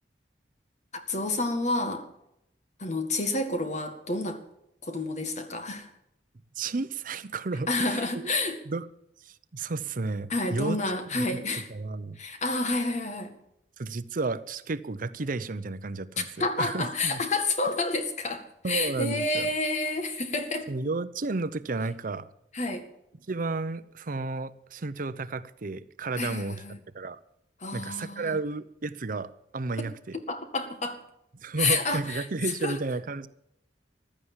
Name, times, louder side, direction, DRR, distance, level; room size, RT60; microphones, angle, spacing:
voice 1, 0.9-2.1 2.8-4.4 4.8-5.9 7.7-8.6 10.3-11.7 12.2-13.3 16.4-20.7 22.5-22.9 26.2-26.8 27.6-28.4 30.3-31.0 31.6-32.3 32.6-32.8, left 2 dB, 45° left, 1.9 m, -29 dB
voice 2, 6.6-8.3 8.7-8.9 9.2-10.8 11.1-11.2 11.7-12.2 13.8-17.2 18.6-19.5 20.7-22.3 23.3-26.6 26.9-27.2 27.7-30.2 31.4-33.3, right 3 dB, 50° right, 0.7 m, -32 dB
15.5 x 11.5 x 7.4 m
head